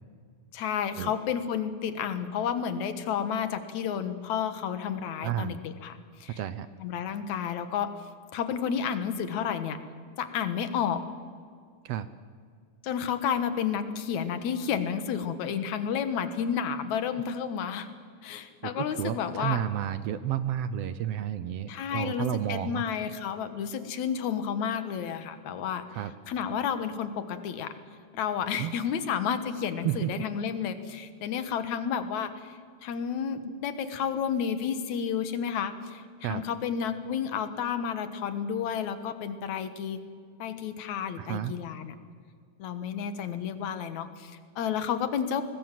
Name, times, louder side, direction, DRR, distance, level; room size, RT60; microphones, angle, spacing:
voice 1, 0.5-6.4 6.8-7.9 8.3-9.8 10.2-11.0 12.8-17.9 18.2-19.6 21.7-25.9 26.3-27.8 28.1-32.6 32.8-40.0 40.4-41.9 42.6-45.4, left 8 dB, 80° left, 10 dB, 2.6 m, -31 dB
voice 2, 5.2-5.6 6.4-6.7 11.8-12.1 18.6-22.8 25.9-26.1 28.6-28.7 29.8-30.1 36.2-36.4 41.2-41.5, right 11 dB, 70° right, 13 dB, 1.6 m, -31 dB
24.5 x 20.0 x 7.6 m, 2.1 s
omnidirectional pair, 3.3 m